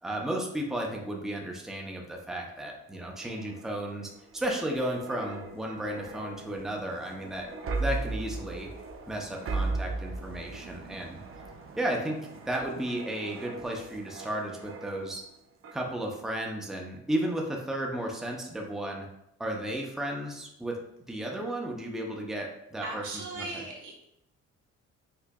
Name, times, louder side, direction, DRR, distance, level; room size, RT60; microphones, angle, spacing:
voice 1, 0.0-7.5 7.8-8.7 9.1-11.2 11.8-15.3 15.7-19.1 19.4-20.8 21.1-23.0 23.4-23.6, right 1 dB, ahead, 0 dB, 0.6 m, -34 dB
sound 1, 2.9-15.3 15.6-15.9, right 3 dB, 45° right, 0.6 m, -38 dB
voice 2, 22.8-24.0, right 2 dB, 85° right, -2 dB, 1.1 m, -39 dB
4.7 x 2.5 x 2.2 m, 0.79 s
cardioid pair, 90°, 30 cm